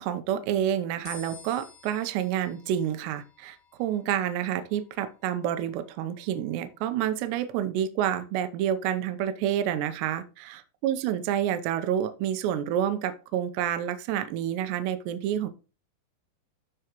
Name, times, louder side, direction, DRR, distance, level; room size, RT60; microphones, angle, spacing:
voice 1, 0.0-15.5, right 10 dB, 80° right, 10 dB, 2.9 m, -29 dB
sound 1, 1.0-7.5, left 4 dB, 70° left, 5.4 m, -53 dB
12.5 x 4.7 x 3.0 m, 0.31 s
omnidirectional pair, 4.9 m